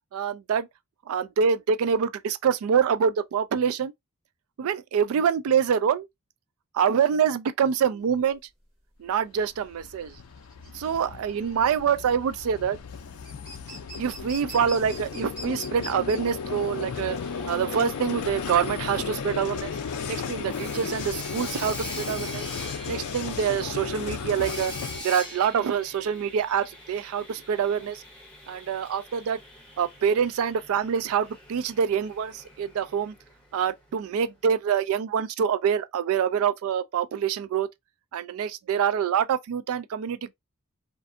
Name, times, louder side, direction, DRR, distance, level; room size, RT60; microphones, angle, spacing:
voice 1, 0.1-0.7 1.1-3.9 4.6-6.1 6.7-8.4 9.0-10.1 10.7-12.8 14.0-17.2 17.5-19.7 20.0-22.4 22.9-24.7 25.0-28.0 28.5-29.4 29.8-33.1 33.5-37.7 38.1-40.3, right 7 dB, 70° right, 0.3 m, -25 dB
sound 1, 8.1-24.4, equal, 25° right, 0.9 m, -46 dB
Vehicle, 9.4-25.0, left 6 dB, 80° left, 0.4 m, -35 dB
Sawing, 16.1-33.9, left 1 dB, 5° left, 0.6 m, -44 dB
2.5 x 2.4 x 2.4 m
head